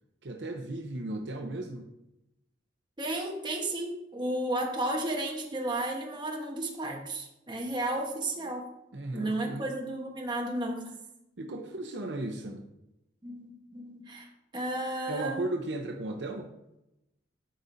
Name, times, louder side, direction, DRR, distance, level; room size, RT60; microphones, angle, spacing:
voice 1, 0.2-1.9 8.9-9.7 11.4-12.6 15.1-16.5, right 2 dB, 65° right, 4 dB, 0.8 m, -36 dB
voice 2, 3.0-8.7 9.1-10.9 13.2-15.5, right 1 dB, 25° right, 1 dB, 1.2 m, -33 dB
12.5 x 5.1 x 2.7 m, 0.88 s
head